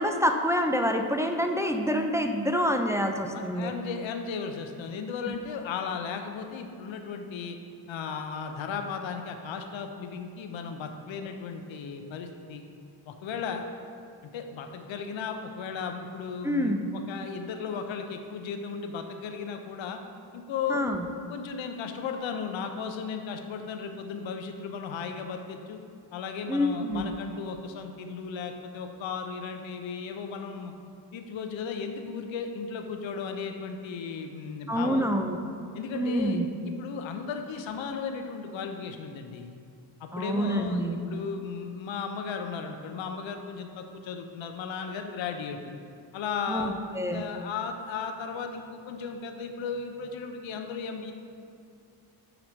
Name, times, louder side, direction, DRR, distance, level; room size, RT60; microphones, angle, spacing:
voice 1, 0.0-3.7 5.3-5.4 16.4-16.9 20.7-21.0 26.5-27.1 34.7-35.4 35.9-36.5 40.1-41.0 46.5-47.2, equal, 5° right, 4 dB, 0.5 m, -27 dB
voice 2, 3.3-7.6 7.9-12.6 13.1-13.6 14.2-20.0 20.3-21.0 21.3-25.8 26.1-30.7 31.1-35.1 35.7-39.6 40.0-45.7 46.1-46.8 47.1-51.1, left 6 dB, 70° left, 5 dB, 0.8 m, -35 dB
9.0 x 3.0 x 5.1 m, 2.5 s
supercardioid pair, 55°, 48 cm